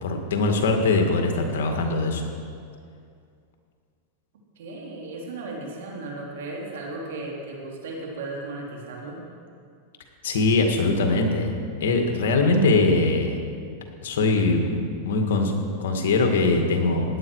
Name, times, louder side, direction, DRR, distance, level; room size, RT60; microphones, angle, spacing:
voice 1, 0.0-2.3 10.2-13.4 14.0-17.2, left 3 dB, 80° left, 3 dB, 2.0 m, -22 dB
voice 2, 4.5-9.2, right 2 dB, 75° right, -2 dB, 3.5 m, -35 dB
17.0 x 10.5 x 4.8 m, 2.3 s
supercardioid pair, 130°, 0 cm